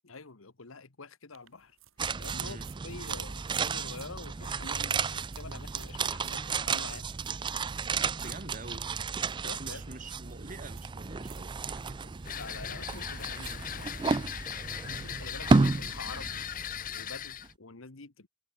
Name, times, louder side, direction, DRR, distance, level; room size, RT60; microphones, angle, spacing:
voice 1, 0.0-1.8 2.2-2.6 2.8-7.1 7.4-7.5 9.4-9.8 12.3-16.3 16.9-18.3, left 4 dB, 80° left, 1.5 m, -47 dB
sound 1, 1.3-15.3, right 9 dB, 75° right, 4.5 m, -58 dB
sound 2, 2.0-17.2 17.4-17.5, right 4 dB, 25° right, 0.4 m, -32 dB
voice 2, 8.0-8.8 9.4-12.2, right 2 dB, 40° right, 2.9 m, -46 dB
sound 3, 12.2-17.5, left 10 dB, 40° left, 0.9 m, -39 dB
head